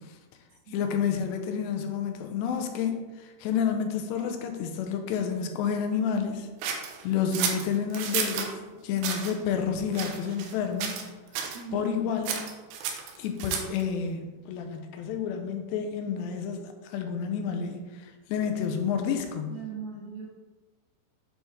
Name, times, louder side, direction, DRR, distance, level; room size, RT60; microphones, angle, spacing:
voice 1, 0.7-6.5 7.0-8.6 8.8-11.0 11.7-12.3 13.2-19.5, left 7 dB, 85° left, 5 dB, 2.8 m, -30 dB
sound 1, 6.6-8.5 9.0-9.3 9.9-10.6 10.8-11.1 11.3-11.6 12.2-13.8, right 7 dB, 90° right, 2.8 m, -31 dB
voice 2, 11.5-12.2 19.5-20.3, right 5 dB, 70° right, -5 dB, 3.5 m, -39 dB
7.8 x 4.5 x 3.5 m, 1.2 s
omnidirectional pair, 4.9 m